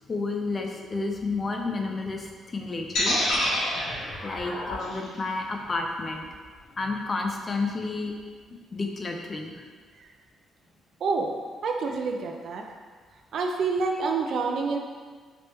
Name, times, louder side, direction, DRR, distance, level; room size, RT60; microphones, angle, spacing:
voice 1, 0.1-3.5 4.2-6.3 6.8-8.1 8.7-9.6, left 3 dB, 35° left, 2 dB, 0.5 m, -31 dB
sound 1, 2.9-7.0, left 1 dB, 75° left, 0.9 m, -29 dB
voice 2, 11.0-11.3 11.6-12.6 13.3-14.8, right 4 dB, 65° right, 3 dB, 0.4 m, -27 dB
3.3 x 3.0 x 3.0 m, 1.6 s
cardioid pair, 90°, 0 cm